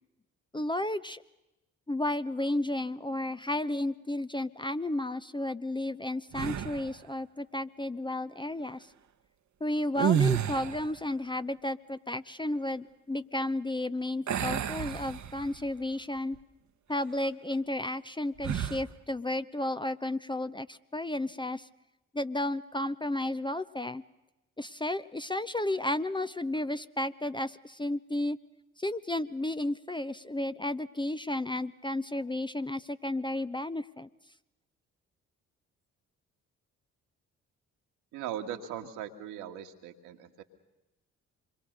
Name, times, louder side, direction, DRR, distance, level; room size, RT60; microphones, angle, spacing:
voice 1, 0.5-1.2 1.9-8.9 9.6-16.4 16.9-21.7 22.1-24.0 24.6-28.4 28.8-34.1, left 1 dB, 10° left, 12 dB, 0.8 m, -33 dB
sound 1, 6.3-7.0 9.9-11.0 14.3-15.7 16.2-16.4 18.4-18.9, right 9 dB, 45° right, 1.2 m, -30 dB
voice 2, 38.1-40.4, right 9 dB, 70° right, 4 dB, 2.0 m, -39 dB
26.5 x 22.5 x 6.7 m, 0.97 s
figure-of-eight pair, 40°, 40 cm